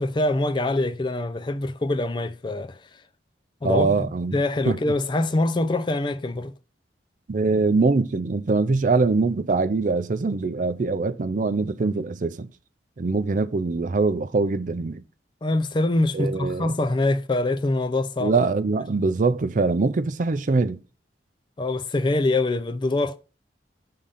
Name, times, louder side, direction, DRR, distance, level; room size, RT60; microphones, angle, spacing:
voice 1, 0.0-2.8 3.6-6.5 15.4-18.5 21.6-23.2, left 2 dB, 25° left, 0.4 m, -24 dB
voice 2, 3.6-4.4 4.7-4.8 7.3-12.5 13.0-15.0 16.1-16.7 18.2-20.8, right 3 dB, 45° right, 0.4 m, -23 dB
6.8 x 3.8 x 5.6 m
head